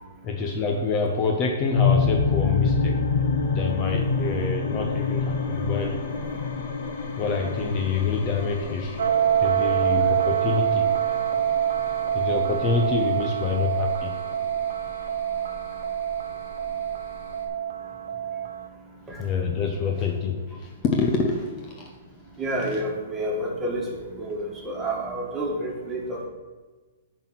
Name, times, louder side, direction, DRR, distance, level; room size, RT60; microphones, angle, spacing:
voice 1, 0.2-3.0 3.5-6.0 7.2-9.0 9.4-10.9 12.1-14.2 19.1-21.9 22.7-22.8, left 4 dB, 30° left, 2 dB, 0.9 m, -26 dB
sound 1, 1.7-17.5, left 4 dB, 60° left, 1.7 m, -28 dB
sound 2, 9.0-18.7, right 10 dB, 75° right, 1.0 m, -26 dB
voice 2, 22.4-23.9 24.2-26.3, right 1 dB, 10° right, -2 dB, 1.8 m, -29 dB
10.5 x 4.2 x 6.1 m, 1.3 s
hypercardioid pair, 155°, 0 cm